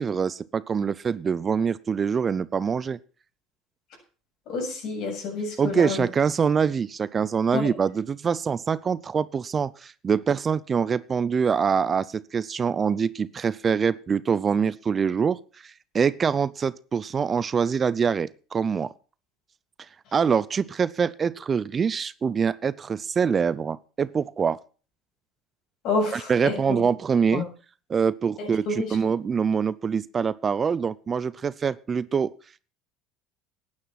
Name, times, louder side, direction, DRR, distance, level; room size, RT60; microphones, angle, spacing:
voice 1, 0.0-3.0 5.6-18.9 20.1-24.6 26.1-27.4 27.9-32.3, right 6 dB, 30° right, 19 dB, 0.5 m, -25 dB
voice 2, 4.5-6.1 7.5-7.7 25.8-26.8 27.3-27.4 28.4-29.0, left 3 dB, 60° left, 2 dB, 7.6 m, -29 dB
12.5 x 9.8 x 5.8 m, 0.38 s
supercardioid pair, 95°, 0 cm